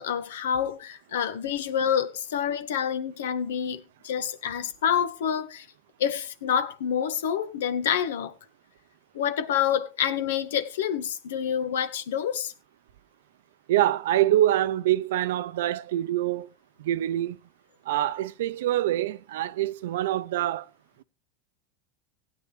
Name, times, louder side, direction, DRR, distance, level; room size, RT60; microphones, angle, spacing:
voice 1, 0.0-5.7 6.0-8.3 9.1-12.5, left 8 dB, 85° left, 1.5 m, -27 dB
voice 2, 13.7-16.5 16.8-17.4 17.9-20.7, right 13 dB, 80° right, 0.6 m, -25 dB
16.5 x 9.7 x 3.3 m
supercardioid pair, 115°, 0 cm